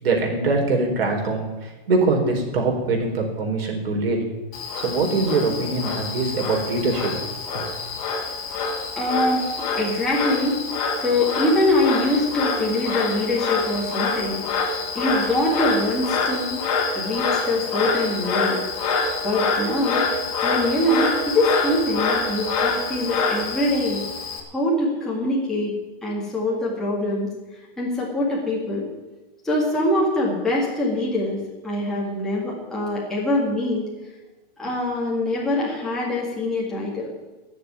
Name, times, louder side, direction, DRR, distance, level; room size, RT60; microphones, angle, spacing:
voice 1, 0.0-4.2 4.8-7.1 7.5-7.6, right 3 dB, 75° right, 1 dB, 4.5 m, -23 dB
Frog, 4.5-24.4, left 4 dB, 35° left, 2.2 m, -26 dB
voice 2, 9.0-10.6 11.0-14.7 15.0-16.7 16.9-18.6 19.2-20.0 20.4-24.0 24.5-25.8 26.0-27.3 27.8-28.8 29.4-31.4 31.6-33.8 34.6-37.1, left 1 dB, ahead, -6 dB, 2.0 m, -23 dB
14.0 x 7.4 x 9.5 m, 1.1 s
supercardioid pair, 180°, 30 cm